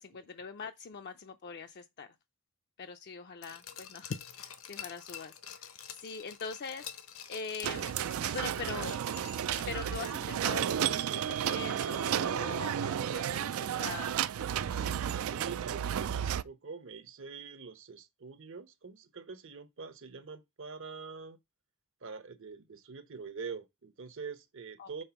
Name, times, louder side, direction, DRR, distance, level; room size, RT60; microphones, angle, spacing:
voice 1, 0.0-2.1 2.8-5.6 5.9-6.9 7.3-7.9 8.3-9.0 9.6-14.2 24.8-25.0, left 5 dB, 50° left, 0.5 m, -42 dB
Glass, 3.4-10.4 10.7-10.8, left 9 dB, 80° left, 1.0 m, -48 dB
sound 1, 7.6-16.4, right 9 dB, 80° right, 0.3 m, -32 dB
voice 2, 15.2-21.4 22.0-25.0, right 5 dB, 65° right, 0.9 m, -45 dB
5.5 x 4.3 x 5.8 m
head